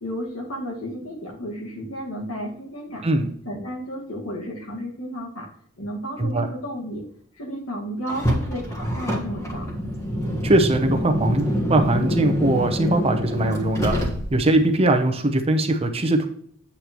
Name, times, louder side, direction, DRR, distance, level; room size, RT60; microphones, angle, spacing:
voice 1, 0.0-3.0 3.5-5.5 5.8-7.0 7.4-9.7, equal, 75° left, 1 dB, 1.8 m, -32 dB
Car, 8.1-14.6, equal, 15° left, 1.3 m, -26 dB
voice 2, 10.4-14.0 14.3-16.3, right 1 dB, 25° right, 6 dB, 0.7 m, -21 dB
8.5 x 6.6 x 3.0 m, 0.65 s
head